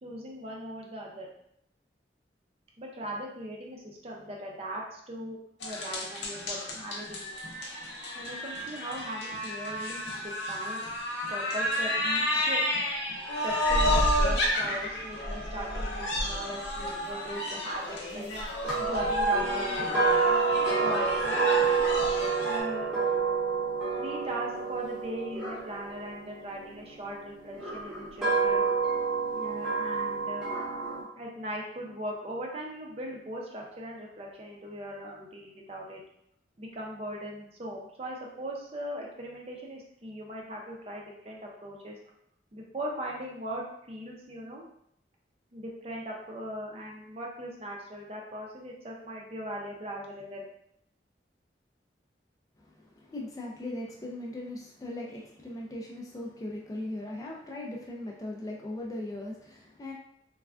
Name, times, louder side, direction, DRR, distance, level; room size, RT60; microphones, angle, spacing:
voice 1, 0.0-1.3 2.8-7.3 8.1-10.8 11.3-12.7 13.4-18.3 18.8-19.7 20.8-21.4 22.4-23.2 24.0-28.6 29.3-30.5 31.2-36.0 36.6-42.0 42.5-44.7 45.5-50.4, right 1 dB, 35° right, -1 dB, 0.5 m, -39 dB
sound 1, 5.6-22.6, left 1 dB, 85° left, 0.6 m, -30 dB
sound 2, 18.6-26.8 27.5-31.0, right 5 dB, 5° right, 0.7 m, -29 dB
voice 2, 52.6-59.9, left 1 dB, 20° left, -2 dB, 0.3 m, -39 dB
3.3 x 2.2 x 2.4 m, 0.72 s
head